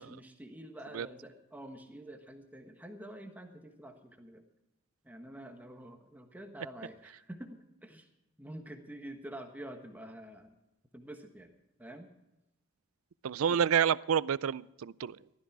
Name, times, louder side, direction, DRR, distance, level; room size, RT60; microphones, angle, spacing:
voice 1, 0.0-4.4 5.0-8.1 8.4-10.6 10.9-11.5 11.8-12.1 13.5-13.6, right 1 dB, 10° right, 4 dB, 1.3 m, -47 dB
voice 2, 13.2-15.2, right 8 dB, 75° right, 20 dB, 0.4 m, -28 dB
15.5 x 13.0 x 4.7 m, 0.93 s
head